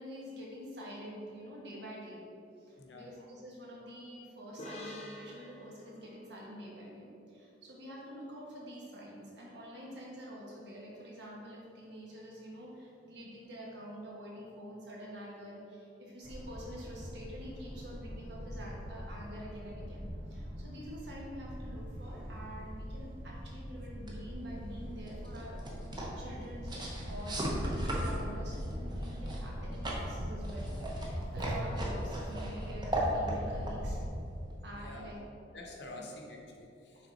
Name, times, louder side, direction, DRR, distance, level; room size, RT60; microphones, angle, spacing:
voice 1, 0.0-2.3 2.6-25.6 26.2-30.8 31.0-34.0 34.6-35.2 35.9-36.1 36.9-37.1, equal, 65° right, -4 dB, 1.4 m, -47 dB
voice 2, 2.8-3.1 34.7-35.1 35.5-37.1, left 2 dB, 65° left, 0 dB, 0.9 m, -48 dB
sound 1, 4.6-8.1, left 1 dB, 35° left, 0.8 m, -49 dB
sound 2, 16.2-34.1, equal, 85° right, 1.4 m, -41 dB
sound 3, 24.0-35.1, right 1 dB, 25° right, 0.8 m, -38 dB
6.2 x 3.8 x 4.2 m, 2.6 s
head